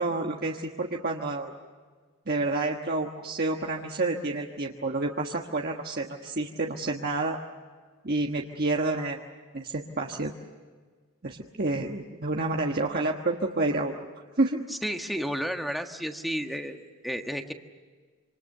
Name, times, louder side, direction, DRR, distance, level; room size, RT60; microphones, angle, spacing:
voice 1, 0.0-1.5 2.3-7.4 8.0-9.2 9.5-10.3 11.2-13.9 14.4-14.6, right 2 dB, 45° right, 1 dB, 1.4 m, -29 dB
voice 2, 14.7-17.5, equal, ahead, 4 dB, 1.4 m, -32 dB
27.5 x 26.5 x 6.7 m, 1.5 s
head